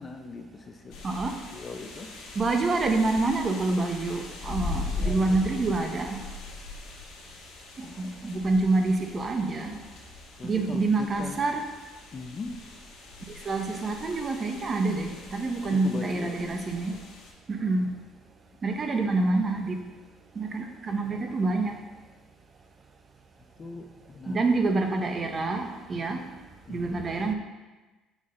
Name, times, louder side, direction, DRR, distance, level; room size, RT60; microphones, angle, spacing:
voice 1, 0.0-1.1 1.5-2.1 4.8-5.8 7.8-8.5 10.4-11.4 12.1-12.5 15.6-16.7 17.8-18.0 23.6-24.4 26.7-27.0, left 3 dB, 30° left, 5 dB, 0.5 m, -41 dB
sound 1, 0.9-17.3, left 3 dB, 70° left, 1.6 m, -40 dB
voice 2, 2.4-6.2 8.0-9.8 10.4-11.6 13.5-17.0 17.5-17.9 18.6-19.8 20.4-21.7 24.3-26.2 26.7-27.3, right 3 dB, 30° right, 5 dB, 0.7 m, -27 dB
6.2 x 5.4 x 3.8 m, 1.2 s
cardioid pair, 125°, 0 cm